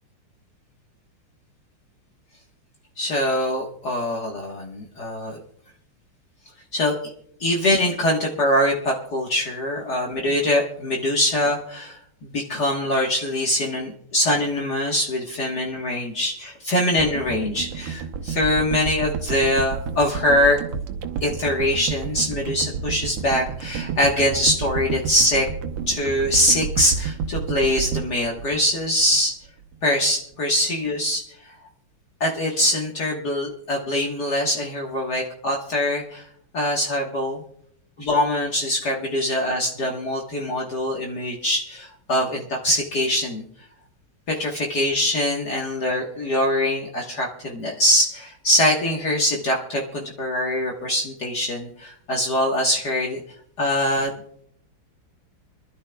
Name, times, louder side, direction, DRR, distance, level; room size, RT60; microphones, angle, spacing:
voice 1, 3.0-5.4 6.7-7.0 7.4-20.6 21.2-25.5 25.9-29.3 29.8-31.5 32.2-36.2 36.5-37.4 38.0-43.4 44.3-53.2 53.6-54.4, left 1 dB, 50° left, -2 dB, 1.9 m, -23 dB
sound 1, 17.0-29.3 29.6-29.7, right 6 dB, 90° right, 1.8 m, -30 dB
26.0 x 12.5 x 2.3 m, 0.70 s
omnidirectional pair, 2.3 m